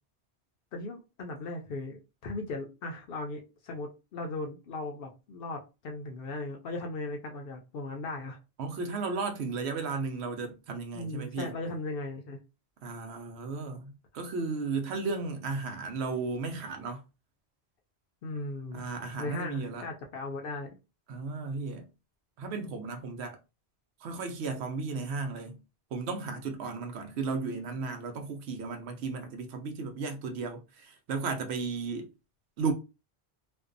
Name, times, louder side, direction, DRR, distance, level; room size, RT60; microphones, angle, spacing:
voice 1, 0.7-8.4 10.9-12.4 18.2-18.9 19.2-20.8, left 2 dB, 65° left, 0.7 m, -37 dB
voice 2, 8.6-11.5 12.8-17.0 18.7-19.9 21.1-21.9 22.4-23.4 24.0-25.6 25.9-32.1 32.6-32.7, right 4 dB, 85° right, 0.9 m, -34 dB
2.5 x 2.2 x 2.4 m
omnidirectional pair, 1.1 m